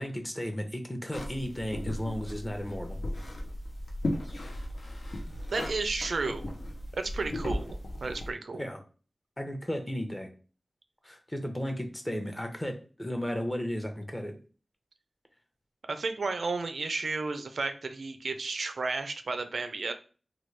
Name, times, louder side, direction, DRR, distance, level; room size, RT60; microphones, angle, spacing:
voice 1, 0.0-3.0 8.5-8.8 9.4-10.3 11.0-14.4, equal, 15° left, 5 dB, 0.6 m, -34 dB
sound 1, 1.1-8.3, left 1 dB, 85° left, 0.5 m, -36 dB
voice 2, 5.5-6.5 6.9-8.6 15.9-19.9, right 3 dB, 85° right, 8 dB, 0.3 m, -33 dB
3.0 x 2.2 x 3.1 m, 0.37 s
wide cardioid pair, 85°, 0 cm